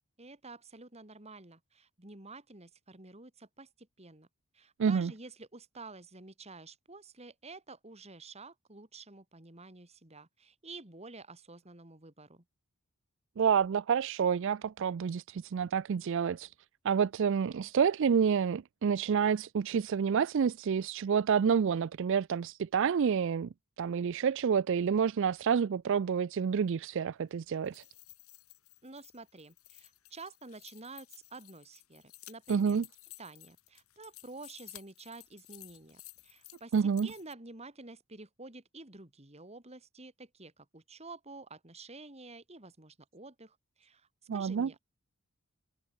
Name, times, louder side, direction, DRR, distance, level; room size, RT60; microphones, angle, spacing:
voice 1, 0.2-4.3 4.5-12.4 28.8-32.8 33.2-44.8, right 3 dB, 30° right, 2.9 m, -50 dB
voice 2, 4.8-5.1 13.4-16.5 16.8-23.5 23.8-27.8 32.5-32.8 36.7-37.1 44.3-44.7, right 7 dB, 55° right, 0.4 m, -28 dB
sound 1, 27.5-37.3, left 17 dB, 75° left, 4.4 m, -55 dB
head